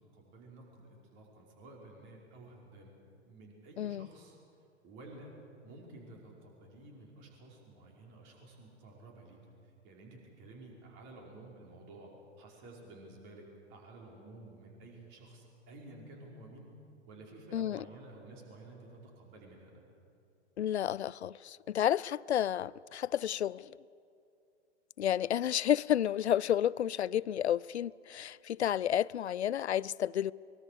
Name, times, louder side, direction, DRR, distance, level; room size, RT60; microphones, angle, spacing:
voice 1, 0.1-2.9 3.3-4.3 4.8-5.3 5.6-9.4 9.6-12.1 12.4-16.7 17.1-19.8, right 2 dB, 35° right, 5.1 m, -52 dB
voice 2, 3.8-4.1 17.5-17.8 20.6-23.7 25.0-30.3, left 10 dB, 65° left, 0.5 m, -31 dB
23.5 x 22.5 x 6.8 m
figure-of-eight pair, 110°, 35 cm